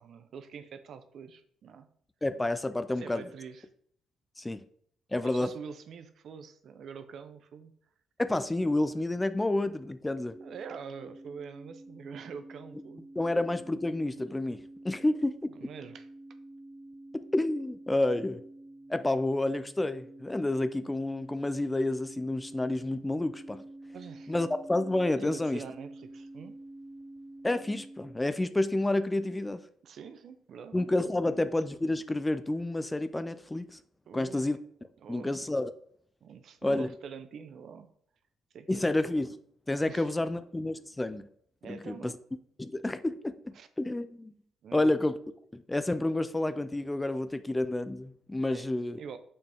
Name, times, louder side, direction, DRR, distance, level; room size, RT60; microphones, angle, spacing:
voice 1, 0.0-1.9 3.0-3.7 5.2-7.7 10.4-13.1 15.5-16.1 23.8-24.4 25.2-26.5 29.8-30.8 31.2-31.3 34.1-34.5 35.0-35.5 36.2-37.9 38.5-38.9 39.9-40.1 41.6-42.1 43.5-43.7 44.6-45.0 48.5-48.7 49.0-49.2, right 6 dB, 65° right, 10 dB, 0.7 m, -45 dB
voice 2, 2.2-3.2 4.4-4.6 5.1-5.5 8.2-10.4 13.2-14.6 14.8-15.5 17.3-18.4 18.9-23.6 24.3-25.6 27.4-29.6 30.7-33.8 34.1-34.6 35.1-35.7 36.6-36.9 38.7-39.4 39.7-41.3 41.6-42.1 42.6-44.3 44.7-45.1 45.5-49.0, left 2 dB, 15° left, 12 dB, 0.4 m, -29 dB
sound 1, 10.3-28.2, right 1 dB, 15° right, 1.0 m, -48 dB
6.7 x 5.4 x 3.5 m, 0.65 s
cardioid pair, 90°, 0 cm